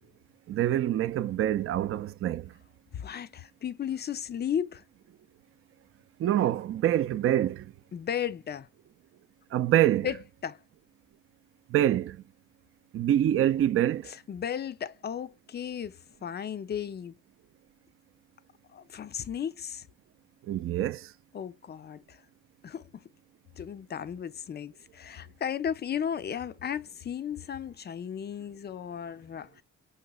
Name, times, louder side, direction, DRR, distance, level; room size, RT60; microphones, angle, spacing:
voice 1, 0.5-2.5 6.2-7.7 9.5-10.1 11.7-12.2 12.9-14.1 20.4-21.1, right 12 dB, 45° right, 0.4 m, -26 dB
voice 2, 2.9-4.8 7.9-8.7 10.0-10.6 14.1-17.2 18.7-19.9 21.3-22.2 22.6-23.0 23.6-29.6, left 8 dB, 35° left, 0.4 m, -35 dB
5.3 x 3.0 x 2.2 m
cardioid pair, 90°, 30 cm